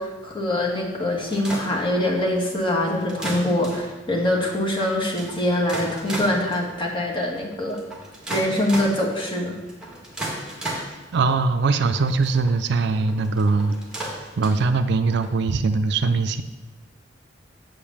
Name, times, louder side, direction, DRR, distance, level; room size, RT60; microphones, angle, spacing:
voice 1, 0.0-7.8 8.3-9.6, left 1 dB, 25° left, -2 dB, 1.8 m, -24 dB
sound 1, 1.3-15.3, right 1 dB, 5° right, 1.8 m, -35 dB
voice 2, 11.1-13.8 14.4-16.4, right 4 dB, 60° right, 10 dB, 0.4 m, -21 dB
7.9 x 5.1 x 7.1 m, 1.2 s
head